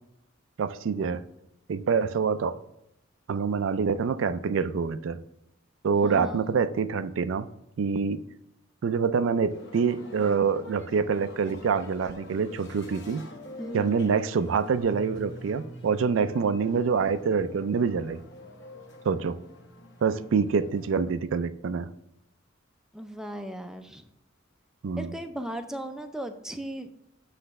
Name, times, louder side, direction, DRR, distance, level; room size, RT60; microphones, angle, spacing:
voice 1, 0.6-1.2 1.7-2.6 3.3-5.2 5.8-7.5 7.8-8.2 8.8-13.2 13.7-18.2 19.0-19.4 20.0-21.9 24.8-25.1, right 5 dB, 70° right, 13 dB, 0.4 m, -26 dB
voice 2, 6.0-6.4 13.6-14.0 20.2-20.3 22.9-24.1 25.0-26.9, right 1 dB, 5° right, 6 dB, 0.4 m, -37 dB
sound 1, 9.5-21.0, left 2 dB, 55° left, 0.8 m, -47 dB
Bass guitar, 14.8-21.0, right 2 dB, 80° left, 1.7 m, -49 dB
7.9 x 3.3 x 5.2 m, 0.81 s
head